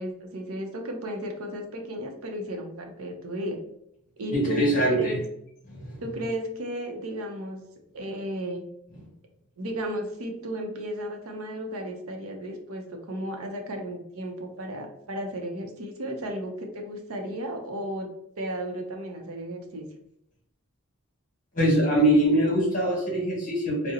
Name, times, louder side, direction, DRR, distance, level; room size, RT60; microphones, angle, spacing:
voice 1, 0.0-3.6 4.2-5.2 6.0-7.6 7.9-8.6 9.6-18.1 18.4-19.9, equal, 70° right, 3 dB, 0.6 m, -34 dB
voice 2, 4.3-5.2 5.7-6.0 21.5-23.9, right 1 dB, 35° left, -4 dB, 1.2 m, -23 dB
3.7 x 2.0 x 2.8 m, 0.75 s
head